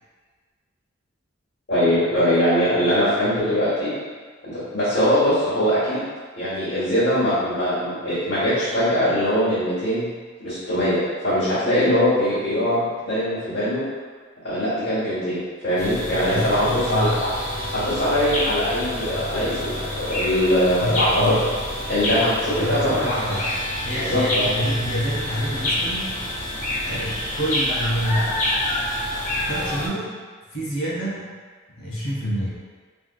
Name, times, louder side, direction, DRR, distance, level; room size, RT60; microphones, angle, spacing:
voice 1, 1.7-3.9 4.4-6.0 6.4-10.1 10.4-13.8 14.4-17.3 17.7-21.3 21.9-23.2 23.9-24.5, equal, 60° left, -14 dB, 1.4 m, -22 dB
sound 1, 15.8-29.9, left 1 dB, 40° left, 0.7 m, -28 dB
sound 2, 16.0-29.7, equal, 25° left, 1.5 m, -36 dB
voice 2, 16.3-17.3 20.8-21.5 22.6-23.5 23.8-26.3 26.8-28.5 29.5-30.2 30.5-31.3 31.8-32.6, equal, 85° left, -7 dB, 1.1 m, -27 dB
3.4 x 2.9 x 2.4 m, 1.5 s
head